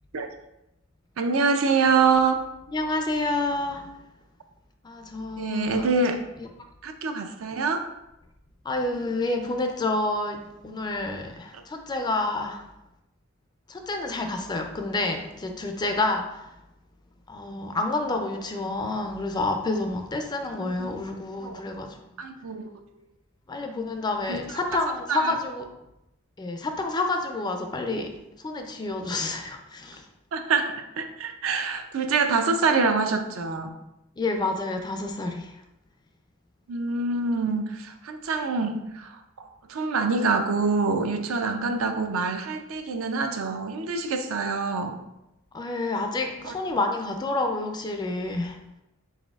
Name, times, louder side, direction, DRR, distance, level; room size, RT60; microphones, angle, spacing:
voice 1, 1.2-2.4 5.4-6.2 6.8-7.9 20.6-21.0 21.4-21.6 22.2-22.8 24.3-24.4 25.1-25.3 30.3-33.7 36.7-45.0 46.4-46.5, right 4 dB, 75° right, 6 dB, 0.5 m, -25 dB
voice 2, 2.7-3.9 4.8-5.9 6.4-6.5 8.6-12.7 13.7-16.6 17.3-22.0 23.5-25.7 26.4-30.1 34.2-35.6 45.5-48.6, left 2 dB, 20° left, 5 dB, 0.3 m, -29 dB
4.1 x 3.9 x 2.3 m, 0.90 s
head